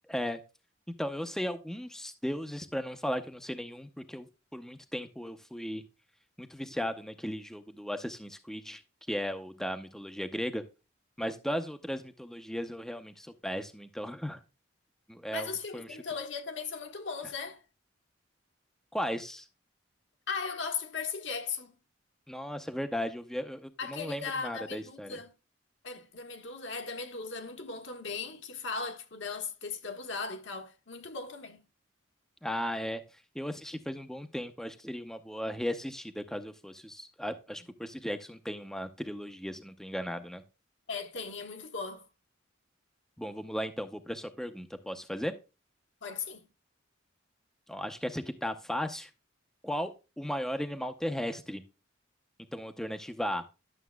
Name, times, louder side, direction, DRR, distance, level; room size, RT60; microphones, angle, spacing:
voice 1, 0.1-0.4 1.0-5.8 6.4-8.8 9.1-10.6 11.2-14.4 15.1-15.9 18.9-19.5 22.3-25.2 32.4-40.4 43.2-45.4 47.7-49.1 49.6-51.6 52.5-53.4, equal, 5° left, 0.6 m, -36 dB
voice 2, 15.3-17.6 20.3-21.8 23.8-25.3 25.8-31.6 40.9-42.0 46.0-46.5, left 5 dB, 65° left, 1.4 m, -37 dB
11.5 x 7.0 x 2.2 m
head